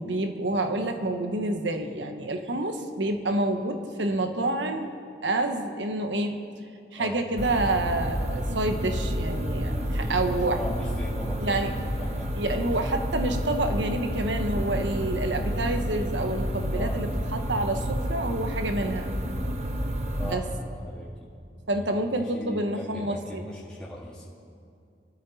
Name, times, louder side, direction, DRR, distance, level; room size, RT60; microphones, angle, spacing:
voice 1, 0.0-4.9 5.2-6.4 6.9-10.6 11.4-11.7 12.4-19.1 20.2-20.5 21.7-23.4, right 2 dB, 85° right, 6 dB, 1.3 m, -28 dB
sound 1, 7.4-20.3, equal, 40° right, 1.1 m, -30 dB
voice 2, 9.6-11.7 12.0-12.8 16.7-17.0 20.2-21.3 21.7-21.9 22.2-24.2, equal, 5° left, -7 dB, 1.7 m, -39 dB
24.0 x 13.0 x 4.3 m, 2.4 s
head